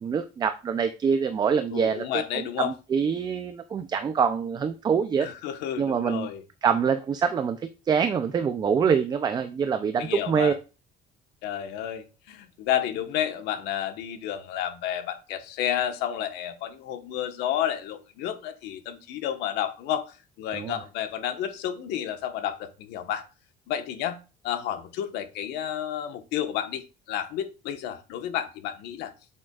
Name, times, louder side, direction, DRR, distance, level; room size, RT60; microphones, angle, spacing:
voice 1, 0.0-5.3 5.8-6.3 6.6-7.6 7.9-10.5 20.5-20.8, right 6 dB, 25° right, 9 dB, 0.5 m, -25 dB
voice 2, 1.7-2.7 5.2-6.4 10.0-10.5 11.4-23.2 23.7-24.2 24.4-29.1, left 10 dB, 85° left, 8 dB, 1.2 m, -31 dB
7.7 x 7.3 x 2.4 m, 0.31 s
cardioid pair, 160°, 17 cm